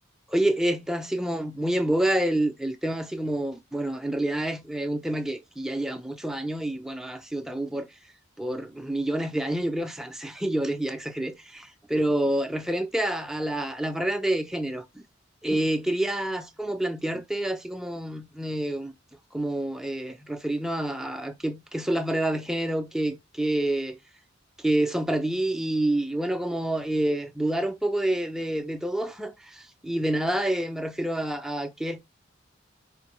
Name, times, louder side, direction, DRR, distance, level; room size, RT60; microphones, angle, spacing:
voice 1, 0.3-7.9 8.4-15.0 15.4-18.9 19.3-24.0 24.6-32.0, right 1 dB, 5° right, 0.5 m, -28 dB
4.4 x 2.2 x 3.0 m
head